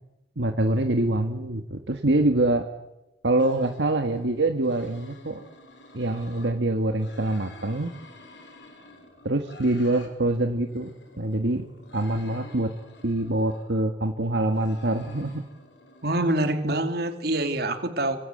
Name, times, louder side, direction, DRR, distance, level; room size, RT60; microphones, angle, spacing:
voice 1, 0.4-2.7 3.2-5.4 5.9-7.9 9.2-11.7 11.9-12.7 13.0-15.4, right 2 dB, 80° right, 5 dB, 1.7 m, -25 dB
sound 1, 3.4-6.5 6.9-10.1 10.4-13.7 14.2-16.4, left 2 dB, 85° left, 5.7 m, -49 dB
voice 2, 16.0-18.2, right 1 dB, 60° right, 7 dB, 2.7 m, -25 dB
25.0 x 25.0 x 7.9 m, 0.96 s
head